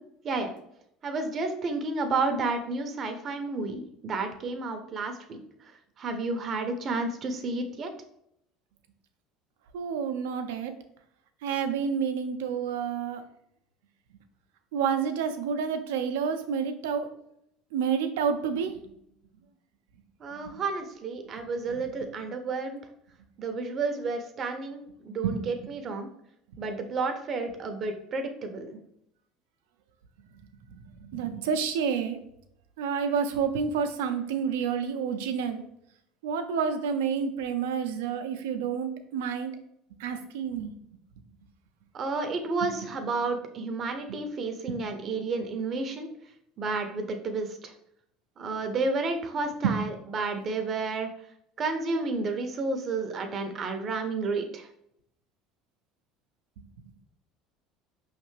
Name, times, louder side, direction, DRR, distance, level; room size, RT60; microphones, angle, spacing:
voice 1, 1.0-5.4 6.0-7.9 20.2-22.8 23.4-26.1 26.6-28.8 41.9-46.1 46.6-47.7 48.4-51.1 51.6-54.7, right 3 dB, 40° right, 7 dB, 0.7 m, -31 dB
voice 2, 9.7-10.7 11.4-13.2 14.7-17.1 17.7-18.7 21.7-21.8 25.2-25.3 31.1-32.2 32.8-35.6 36.2-39.5 40.0-40.7 49.6-49.8, right 7 dB, 85° right, 7 dB, 0.5 m, -29 dB
5.1 x 3.2 x 3.2 m, 0.75 s
supercardioid pair, 95°, 0 cm